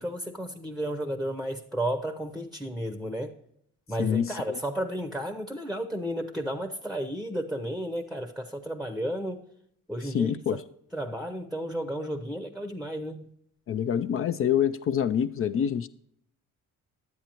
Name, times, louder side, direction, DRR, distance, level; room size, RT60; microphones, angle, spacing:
voice 1, 0.0-3.3 3.9-9.4 9.9-10.6 10.9-13.3, equal, ahead, 0.7 m, -33 dB
voice 2, 4.0-4.6 10.0-10.6 13.7-15.9, left 9 dB, 40° left, 0.4 m, -26 dB
10.5 x 8.0 x 2.9 m
cardioid pair, 80°, 34 cm